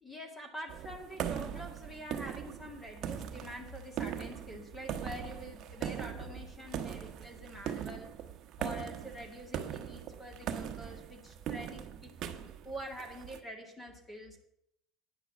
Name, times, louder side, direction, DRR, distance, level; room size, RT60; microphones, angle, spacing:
voice 1, 0.0-8.1 8.6-14.4, equal, 15° left, 3 dB, 2.1 m, -46 dB
sound 1, 0.7-13.4, right 9 dB, 50° right, 1.1 m, -40 dB
10.0 x 6.2 x 8.1 m, 0.76 s
cardioid pair, 125°, 0 cm